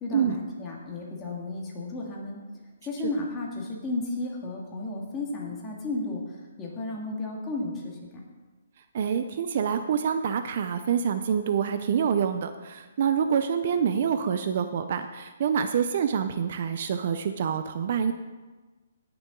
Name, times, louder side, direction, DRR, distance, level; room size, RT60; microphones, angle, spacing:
voice 1, 0.0-2.4 2.8-8.3, left 2 dB, 15° left, -3 dB, 1.9 m, -33 dB
voice 2, 8.9-18.1, right 7 dB, 45° right, 9 dB, 0.5 m, -26 dB
17.0 x 6.9 x 3.8 m, 1.3 s
hypercardioid pair, 165°, 0 cm